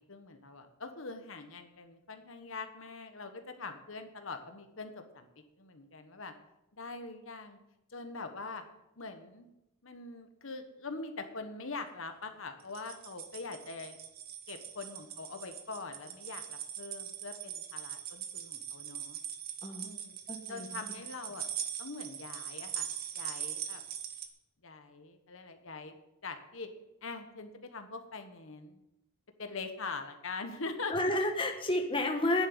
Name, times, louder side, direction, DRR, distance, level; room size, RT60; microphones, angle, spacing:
voice 1, 0.1-5.3 5.6-6.3 6.8-7.6 7.9-8.6 9.0-9.5 9.8-14.0 14.5-19.2 19.8-20.2 20.5-21.5 21.8-22.9 23.1-23.8 24.6-26.0 26.2-26.7 27.0-28.8 29.4-30.9, left 3 dB, 60° left, 6 dB, 1.3 m, -43 dB
sound 1, 12.6-24.3, right 9 dB, 45° right, 1.2 m, -41 dB
voice 2, 20.3-20.7 30.9-32.5, left 1 dB, 25° left, 3 dB, 1.3 m, -30 dB
10.0 x 7.8 x 9.5 m, 0.89 s
head